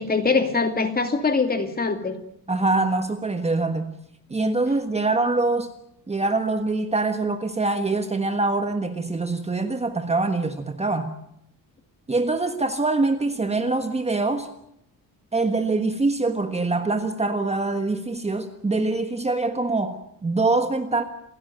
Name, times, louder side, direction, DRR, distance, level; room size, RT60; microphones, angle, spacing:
voice 1, 0.0-2.1, left 4 dB, 25° left, 7 dB, 2.5 m, -23 dB
voice 2, 2.5-3.9 4.3-5.7 6.1-11.1 12.1-14.5 15.3-21.0, right 3 dB, 15° right, 7 dB, 1.5 m, -24 dB
29.0 x 16.5 x 9.2 m, 0.76 s
wide cardioid pair, 175°, 38 cm